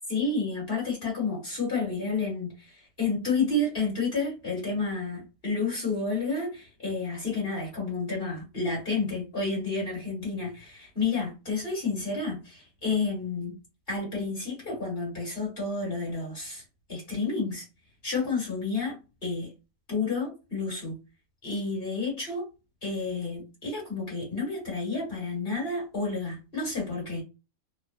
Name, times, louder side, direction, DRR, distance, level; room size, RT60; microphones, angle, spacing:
voice 1, 0.1-13.5 13.9-16.6 16.9-17.6 18.0-19.0 19.2-19.5 19.9-21.0 21.4-22.5 22.8-27.2, left 3 dB, 40° left, 1.5 m, -30 dB
3.0 x 2.1 x 2.4 m
omnidirectional pair, 1.5 m